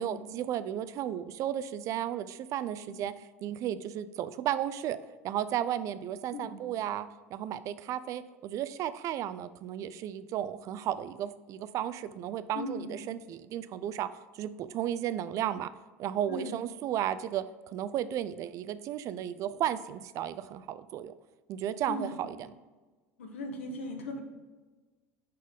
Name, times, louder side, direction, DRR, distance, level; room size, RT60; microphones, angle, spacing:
voice 1, 0.0-5.0 5.2-14.1 14.3-15.7 16.0-17.4 17.7-21.1 21.5-22.5, right 11 dB, 50° right, 14 dB, 0.4 m, -34 dB
voice 2, 12.5-13.1 16.3-16.6 21.9-22.1 23.2-24.2, left 2 dB, 85° left, 3 dB, 1.1 m, -38 dB
5.2 x 4.3 x 5.0 m, 1.3 s
hypercardioid pair, 80°, 7 cm